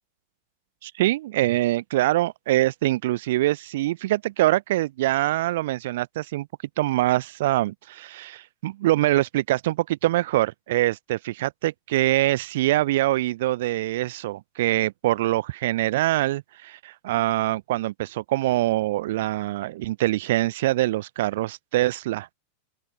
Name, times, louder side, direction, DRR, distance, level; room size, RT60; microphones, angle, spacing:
voice 1, 0.8-6.5 6.8-22.3, right 16 dB, 55° right, 0.7 m, -24 dB
open air
figure-of-eight pair, 90°, 0 cm